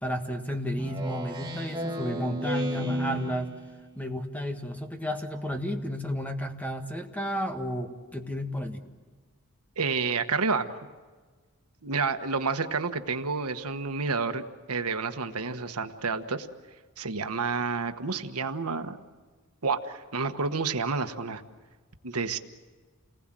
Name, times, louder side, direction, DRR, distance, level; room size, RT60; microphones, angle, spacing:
voice 1, 0.0-3.5 3.9-8.8, equal, 5° left, 4 dB, 1.7 m, -32 dB
Speech synthesizer, 0.8-3.8, right 1 dB, 20° right, 1.9 m, -34 dB
voice 2, 9.8-10.7 11.8-14.4 14.7-16.5 17.0-19.0 19.6-21.4 22.0-22.4, right 4 dB, 80° right, 8 dB, 1.3 m, -29 dB
29.0 x 20.0 x 7.7 m, 1.4 s
head